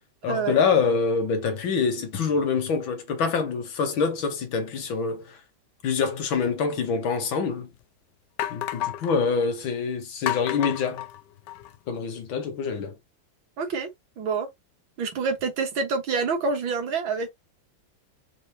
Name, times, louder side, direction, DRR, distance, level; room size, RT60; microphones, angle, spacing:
voice 1, 0.2-5.4 5.8-7.7 8.5-11.0 11.9-12.9, left 5 dB, 85° left, 2.0 m, -25 dB
sound 1, 7.0-7.1 7.7-7.8 8.4-9.2 10.3-11.8, left 12 dB, 70° left, 1.2 m, -31 dB
voice 2, 13.6-13.9 14.2-14.5 15.0-17.3, right 4 dB, 90° right, 2.2 m, -27 dB
5.3 x 3.4 x 2.8 m
omnidirectional pair, 2.1 m